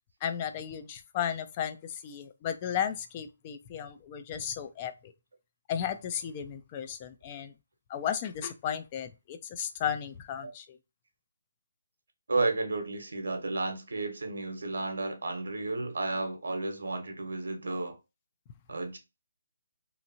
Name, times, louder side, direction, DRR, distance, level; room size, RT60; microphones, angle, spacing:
voice 1, 0.2-5.1 5.7-7.5 7.9-10.8, left 9 dB, 25° left, 0.3 m, -34 dB
voice 2, 12.3-18.0 18.7-19.0, right 3 dB, 80° right, 1.0 m, -32 dB
2.9 x 2.5 x 2.7 m
hypercardioid pair, 165°, 0 cm